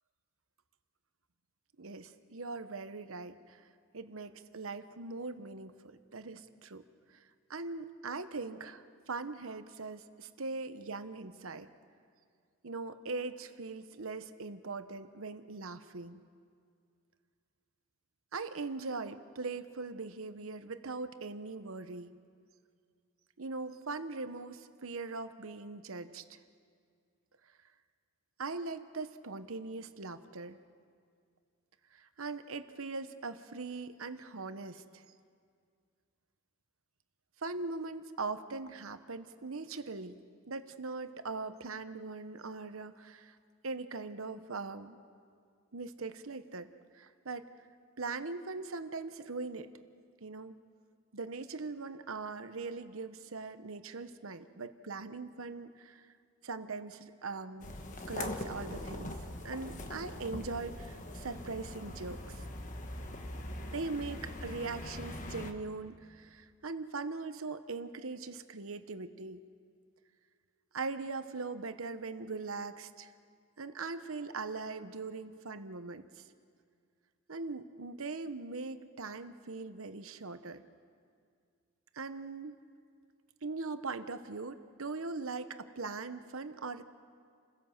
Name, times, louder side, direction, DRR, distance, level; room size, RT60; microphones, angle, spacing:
voice 1, 1.8-3.6 3.9-6.8 7.5-11.7 12.6-16.2 18.3-22.1 23.4-26.4 28.4-30.6 31.9-35.0 37.4-40.2 40.5-43.4 43.6-45.0 45.7-47.5 48.0-49.7 50.2-50.6 51.1-56.0 56.4-57.7 58.1-59.1 59.4-62.4 63.7-69.4 70.7-73.1 73.6-76.2 77.3-80.6 81.9-82.6 83.4-86.8, right 3 dB, 75° right, 10 dB, 1.0 m, -41 dB
sound 1, 57.6-65.5, left 1 dB, 35° left, 1.3 m, -42 dB
28.0 x 16.5 x 7.4 m, 2.2 s
head